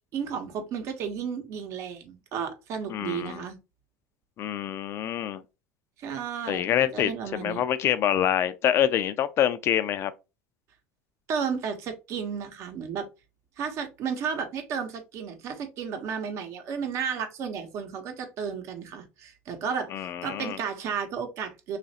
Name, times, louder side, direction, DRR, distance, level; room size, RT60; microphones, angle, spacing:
voice 1, 0.1-3.6 6.0-7.6 11.3-13.1 13.6-21.8, right 6 dB, 55° right, 0.8 m, -33 dB
voice 2, 2.9-3.4 4.4-5.4 6.5-10.1 19.9-20.6, left 10 dB, 45° left, 0.4 m, -26 dB
3.1 x 2.5 x 2.7 m
hypercardioid pair, 90°, 6 cm